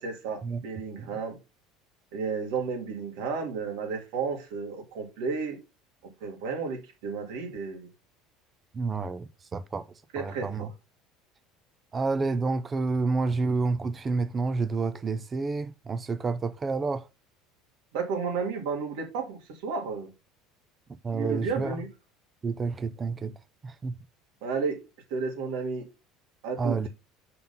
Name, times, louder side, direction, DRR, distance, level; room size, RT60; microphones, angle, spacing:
voice 1, 0.0-1.4 2.1-5.6 6.0-7.9 10.1-10.7 17.9-20.1 21.1-21.9 24.4-24.8 25.1-25.9 26.4-26.8, right 5 dB, 65° right, 2.4 m, -32 dB
voice 2, 8.7-9.9 10.2-10.7 11.9-17.1 21.0-21.8 22.4-23.3 23.6-23.9 26.6-26.9, right 4 dB, 15° right, 0.4 m, -29 dB
5.7 x 3.8 x 5.4 m
cardioid pair, 170°, 0 cm